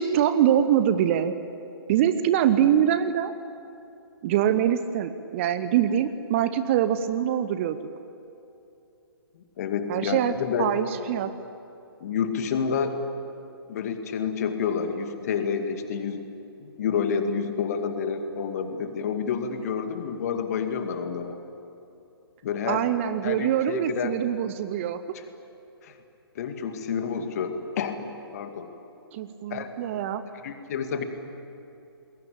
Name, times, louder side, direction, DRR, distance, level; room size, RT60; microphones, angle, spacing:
voice 1, 0.0-1.3 1.9-3.3 4.2-7.8 9.9-10.3 10.6-11.3 22.7-25.0 29.1-30.2, right 10 dB, 30° right, 11 dB, 1.0 m, -24 dB
voice 2, 9.4-10.7 12.0-12.9 13.7-16.2 16.6-21.4 22.4-22.8 23.2-24.2 25.8-26.0 26.4-28.1 28.3-28.7 29.5-29.7 30.4-31.0, left 6 dB, 40° left, 7 dB, 2.4 m, -29 dB
29.0 x 21.5 x 8.7 m, 2.8 s
figure-of-eight pair, 125°, 13 cm